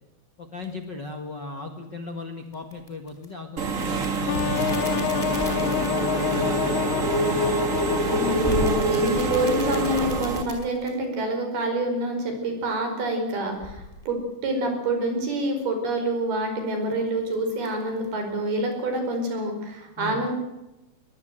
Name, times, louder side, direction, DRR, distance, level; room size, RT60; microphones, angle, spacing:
voice 1, 0.4-5.1 5.5-7.7 20.0-20.2, left 3 dB, 45° left, 5 dB, 1.5 m, -38 dB
sound 1, 0.6-0.8 2.5-3.3 3.7-6.6 8.3-11.0 13.5-14.1 16.6-18.2 18.6-18.7 19.1-19.3, left 1 dB, 5° left, 4.2 m, -37 dB
Engine / Mechanisms, 3.6-10.4, right 2 dB, 55° right, 0.8 m, -25 dB
sound 2, 4.3-9.1, left 15 dB, 85° left, 3.0 m, -29 dB
voice 2, 8.0-20.3, right 1 dB, 75° right, 5 dB, 6.8 m, -27 dB
21.0 x 20.0 x 7.8 m, 0.98 s
omnidirectional pair, 4.4 m